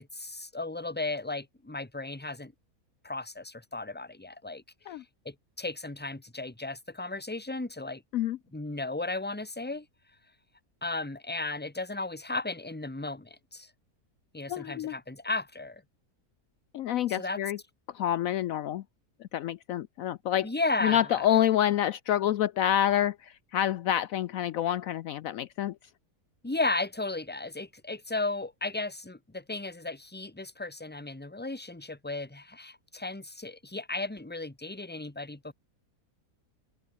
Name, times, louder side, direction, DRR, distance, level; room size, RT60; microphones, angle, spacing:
voice 1, 0.0-2.5 3.0-4.6 5.2-8.0 8.5-9.9 10.8-13.7 14.3-15.8 17.1-17.4 20.4-21.2 26.4-35.5, left 2 dB, 5° left, 1.5 m, -35 dB
voice 2, 14.5-14.9 16.7-17.6 17.9-18.8 19.2-20.5 20.8-25.8, left 11 dB, 70° left, 1.0 m, -27 dB
open air
omnidirectional pair, 1.6 m